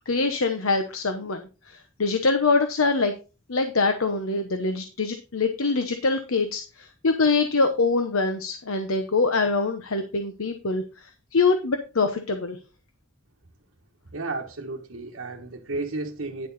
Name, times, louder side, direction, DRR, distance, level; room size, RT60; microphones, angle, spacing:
voice 1, 0.1-3.1 3.5-12.6, left 3 dB, 90° left, 1.0 m, -24 dB
voice 2, 14.1-16.5, right 3 dB, 60° right, 1.2 m, -33 dB
10.0 x 6.6 x 4.0 m
head